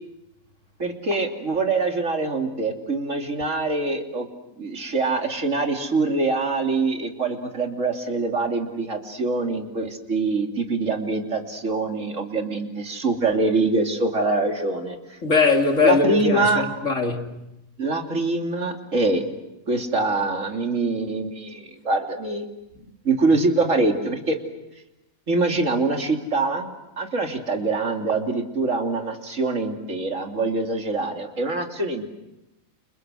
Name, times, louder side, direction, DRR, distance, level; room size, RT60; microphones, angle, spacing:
voice 1, 0.8-4.3 4.6-15.2 15.8-16.6 17.8-19.2 19.7-22.4 23.0-24.4 25.3-26.7 27.0-32.1, right 3 dB, 60° right, 3.4 m, -24 dB
voice 2, 15.2-17.4, left 4 dB, 60° left, 3.2 m, -21 dB
30.0 x 30.0 x 6.4 m
omnidirectional pair, 1.5 m